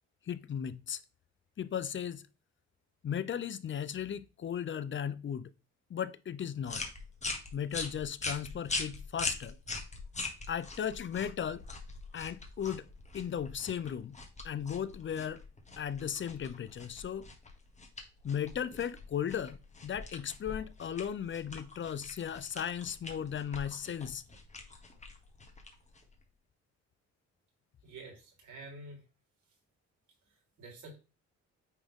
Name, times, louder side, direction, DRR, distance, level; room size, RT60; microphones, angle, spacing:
voice 1, 0.3-1.0 1.6-2.3 3.0-5.5 5.9-6.9 7.5-9.6 10.5-11.6 12.1-12.9 13.1-14.2 14.4-15.4 15.8-17.3 18.2-24.2, left 8 dB, 40° left, 0.6 m, -36 dB
sound 1, 6.6-26.2, left 3 dB, 25° left, 1.6 m, -42 dB
voice 2, 27.8-29.0 30.3-30.9, right 2 dB, 75° right, 4.1 m, -49 dB
9.1 x 3.5 x 3.7 m
cardioid pair, 90°, 30 cm